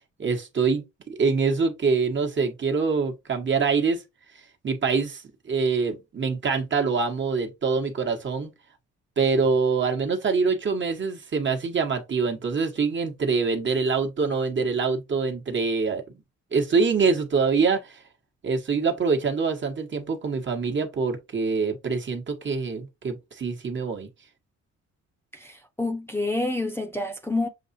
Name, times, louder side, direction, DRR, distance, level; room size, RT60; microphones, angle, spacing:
voice 1, 0.2-4.0 4.6-8.5 9.2-16.0 16.5-18.0 18.4-24.1, right 5 dB, 40° right, 1.3 m, -25 dB
voice 2, 25.3-27.5, left 2 dB, 10° left, 0.9 m, -28 dB
7.0 x 2.4 x 2.6 m
cardioid pair, 90°, 30 cm